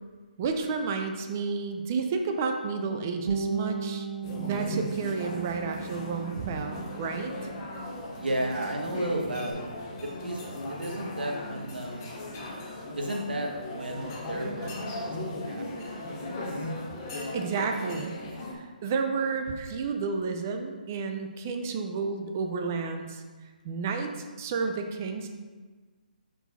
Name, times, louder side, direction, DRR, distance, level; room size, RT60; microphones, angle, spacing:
voice 1, 0.4-4.1 4.4-7.5 17.3-18.1 18.5-23.2 23.6-24.1 24.4-25.3, right 4 dB, 15° right, 5 dB, 0.3 m, -31 dB
Bass guitar, 3.3-8.0 8.3-9.5, right 6 dB, 65° right, 0.7 m, -37 dB
sound 1, 4.2-18.5, left 1 dB, 20° left, 0.7 m, -37 dB
voice 2, 8.1-9.6 10.0-12.2 12.9-16.7, right 1 dB, 85° right, 2 dB, 1.2 m, -34 dB
6.0 x 4.6 x 4.0 m, 1.4 s
hypercardioid pair, 175°, 5 cm